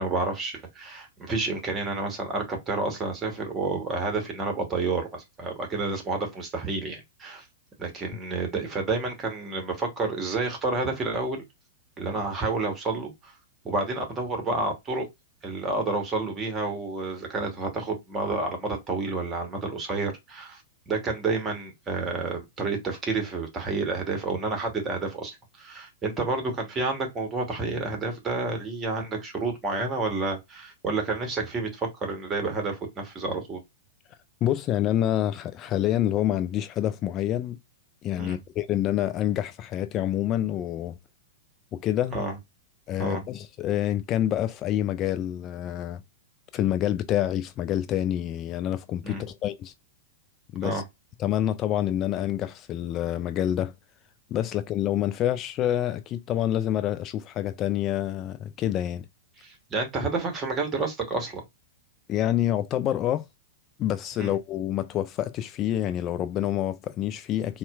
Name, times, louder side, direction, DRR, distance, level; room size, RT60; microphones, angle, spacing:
voice 1, 0.0-7.4 7.8-11.4 12.0-13.3 13.6-15.1 15.4-20.6 20.9-33.6 38.2-38.4 42.1-42.4 43.0-43.2 49.0-49.3 50.6-50.8 59.4-61.4 64.2-64.3, right 3 dB, 20° right, 1.1 m, -30 dB
voice 2, 34.4-37.6 38.0-41.0 41.7-42.2 42.9-46.0 46.5-49.7 50.5-50.8 51.2-53.7 54.3-59.1 62.1-63.2 63.8-67.6, left 12 dB, 30° left, 0.3 m, -27 dB
4.1 x 2.2 x 2.3 m
figure-of-eight pair, 100°, 0 cm